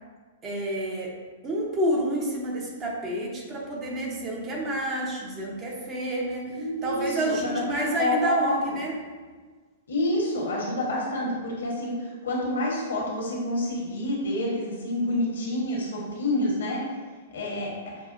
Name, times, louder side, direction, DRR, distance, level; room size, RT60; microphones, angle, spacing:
voice 1, 0.4-1.1 1.4-8.9, right 1 dB, 25° right, -2 dB, 0.8 m, -29 dB
voice 2, 6.5-7.3 7.7-8.6 9.9-11.9 12.2-16.8 17.3-17.9, left 1 dB, 70° left, -3 dB, 1.0 m, -28 dB
5.4 x 2.4 x 2.5 m, 1.4 s
figure-of-eight pair, 105°, 0 cm